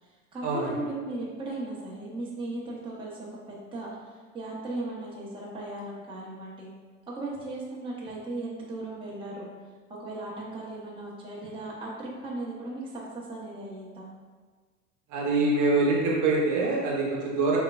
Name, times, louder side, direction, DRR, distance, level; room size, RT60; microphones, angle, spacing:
voice 1, 0.0-6.7 7.1-9.5 9.9-14.1, right 2 dB, 15° right, -5 dB, 0.8 m, -37 dB
voice 2, 15.1-17.6, right 3 dB, 50° right, -3 dB, 1.0 m, -24 dB
6.4 x 2.2 x 2.3 m, 1.4 s
hypercardioid pair, 90°, 39 cm